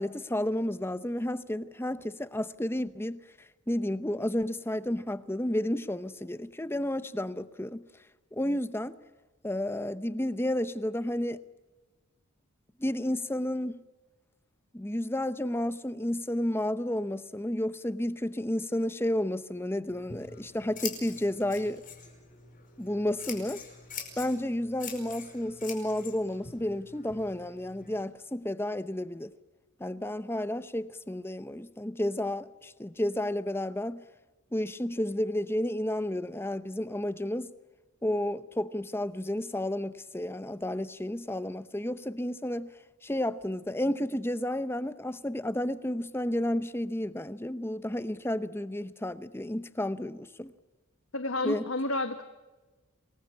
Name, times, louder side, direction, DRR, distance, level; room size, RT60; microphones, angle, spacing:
voice 1, 0.0-3.2 3.7-7.8 8.3-8.9 9.4-11.4 12.8-13.8 14.7-21.8 22.8-23.6 24.2-29.3 29.8-34.0 34.5-37.5 38.0-42.7 43.0-50.5 51.4-51.6, left 1 dB, 10° left, 0.7 m, -31 dB
Scissors, 19.9-28.0, left 6 dB, 35° left, 4.9 m, -44 dB
voice 2, 51.1-52.2, left 2 dB, 65° left, 1.4 m, -30 dB
27.5 x 20.5 x 8.6 m
head